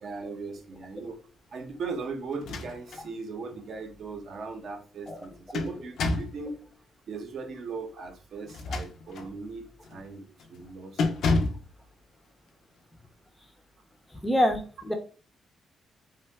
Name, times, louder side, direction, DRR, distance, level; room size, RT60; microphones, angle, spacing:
voice 1, 0.0-1.2 1.5-6.6 7.1-11.4, right 4 dB, 55° right, 5 dB, 0.6 m, -38 dB
sound 1, 2.3-3.1 3.5-3.6 5.1-6.4 8.4-9.3 9.8-10.1 10.4-10.6 11.0-11.7, left 3 dB, 70° left, 0.4 m, -29 dB
voice 2, 14.1-14.9, equal, 10° left, 5 dB, 0.4 m, -26 dB
2.7 x 2.1 x 3.3 m, 0.37 s
cardioid pair, 145°, 0 cm